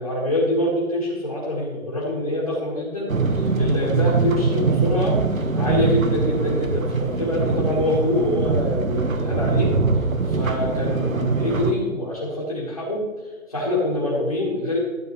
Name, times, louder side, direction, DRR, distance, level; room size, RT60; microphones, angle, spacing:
voice 1, 0.0-9.7 10.2-13.0 13.5-14.8, left 1 dB, 25° left, -7 dB, 1.4 m, -25 dB
sound 1, 3.1-11.7, right 4 dB, 75° right, 1.0 m, -22 dB
12.5 x 8.2 x 3.1 m, 1.4 s
figure-of-eight pair, 175°, 41 cm